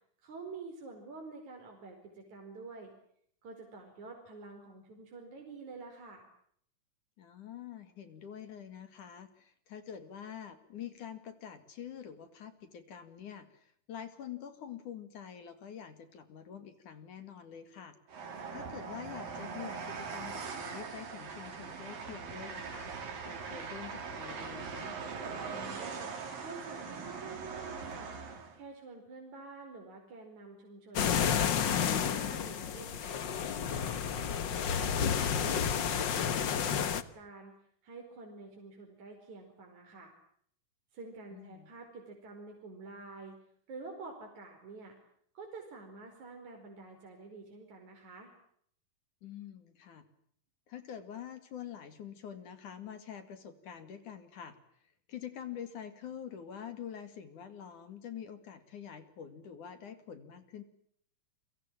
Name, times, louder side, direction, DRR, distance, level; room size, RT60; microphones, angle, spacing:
voice 1, 0.2-2.9 3.4-6.2 25.5-26.1 26.4-28.1 28.5-31.5 31.7-34.0 34.5-37.5 37.8-40.1 40.9-43.4 43.7-44.9 45.3-48.3, right 3 dB, 50° right, 2 dB, 6.1 m, -48 dB
voice 2, 7.2-18.0 18.5-22.9 23.2-25.0 41.3-41.7 49.2-50.1 50.7-54.6 55.1-60.6, left 8 dB, 60° left, 10 dB, 3.7 m, -46 dB
Train, 18.1-28.6, right 5 dB, 70° right, 5.6 m, -41 dB
sound 1, 30.9-37.0, left 8 dB, 85° left, 1.0 m, -31 dB
30.0 x 24.0 x 7.6 m, 0.66 s
omnidirectional pair, 4.2 m